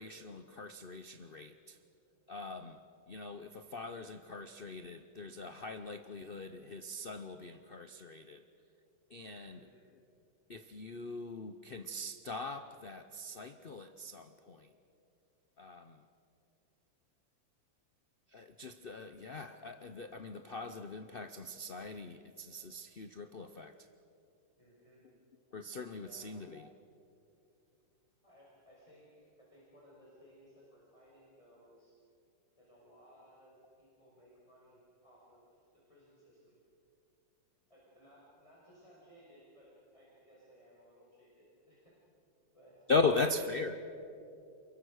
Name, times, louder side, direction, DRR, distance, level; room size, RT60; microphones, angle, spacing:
voice 1, 0.0-1.8 2.3-8.4 9.1-9.7 10.5-14.7 15.6-16.0 18.3-23.9 25.5-26.7 42.9-43.9, left 3 dB, 65° left, 9 dB, 0.5 m, -39 dB
voice 2, 9.5-9.9 24.6-25.0 26.0-26.4 28.2-31.9 32.6-36.6 37.7-41.9 42.5-43.3, equal, 15° left, -7 dB, 5.5 m, -61 dB
28.5 x 22.5 x 6.5 m, 2.8 s
omnidirectional pair, 2.1 m